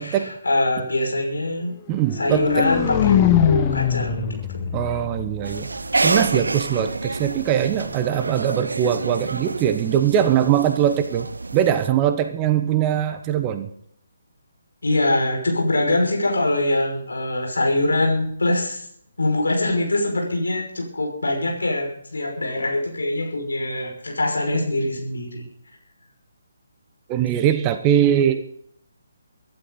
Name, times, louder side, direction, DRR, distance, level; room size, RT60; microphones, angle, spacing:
voice 1, 0.0-1.7 2.1-4.7 14.8-18.9 19.2-25.4, left 1 dB, 65° left, 1 dB, 5.8 m, -23 dB
voice 2, 1.9-2.7 4.7-5.7 6.0-11.3 11.5-13.7 27.1-28.5, right 10 dB, 20° right, 9 dB, 1.0 m, -21 dB
sound 1, 2.0-6.1, left 10 dB, 20° left, 1.1 m, -22 dB
sound 2, 5.4-11.9, right 3 dB, 65° right, 0.8 m, -27 dB
24.0 x 12.0 x 4.0 m, 0.68 s
figure-of-eight pair, 140°, 0 cm